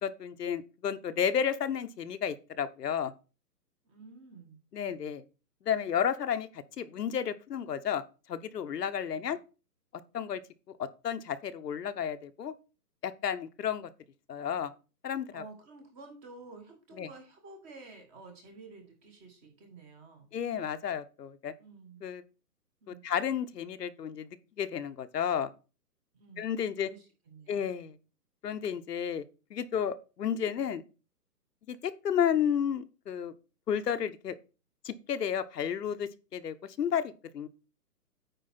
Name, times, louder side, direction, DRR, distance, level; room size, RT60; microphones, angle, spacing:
voice 1, 0.0-3.1 4.7-5.2 5.6-8.0 8.3-9.4 10.1-10.4 10.8-12.5 13.0-13.9 14.3-14.7 15.0-15.4 17.0-17.1 20.3-21.5 22.0-22.2 22.9-24.3 24.6-25.5 26.4-26.9 27.5-28.0 28.4-29.2 29.5-30.8 31.7-33.3 33.7-34.3 34.8-37.5, left 8 dB, 75° left, 0.9 m, -32 dB
voice 2, 3.8-4.6 9.1-9.4 15.3-20.3 21.6-22.0 22.8-23.0 26.1-26.5 26.8-27.6, right 3 dB, 15° right, 1.2 m, -51 dB
9.1 x 4.7 x 4.2 m
hypercardioid pair, 155°, 49 cm